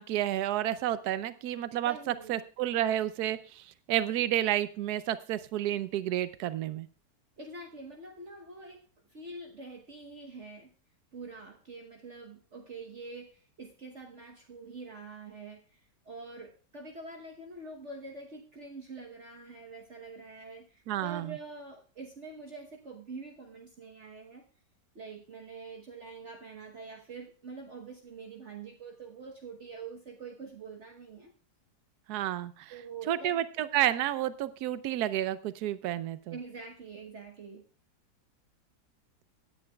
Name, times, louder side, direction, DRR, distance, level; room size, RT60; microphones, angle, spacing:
voice 1, 0.0-6.9 20.9-21.4 32.1-32.7 33.1-36.3, right 12 dB, 70° right, 14 dB, 1.2 m, -30 dB
voice 2, 1.8-2.4 7.4-10.7 11.1-24.4 24.9-31.3 32.7-33.4 36.3-37.7, right 3 dB, 45° right, 1 dB, 1.3 m, -45 dB
18.0 x 9.8 x 2.3 m, 0.36 s
omnidirectional pair, 1.8 m